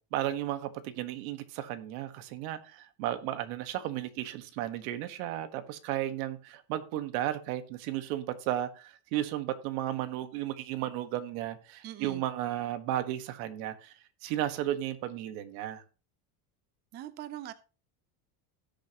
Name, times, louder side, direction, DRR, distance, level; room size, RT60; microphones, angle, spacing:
voice 1, 0.1-13.9 14.2-15.8, right 13 dB, 75° right, 1.5 m, -34 dB
voice 2, 11.8-12.2 16.9-17.5, right 12 dB, 25° right, 0.4 m, -41 dB
17.0 x 6.6 x 2.9 m
cardioid pair, 155°, 42 cm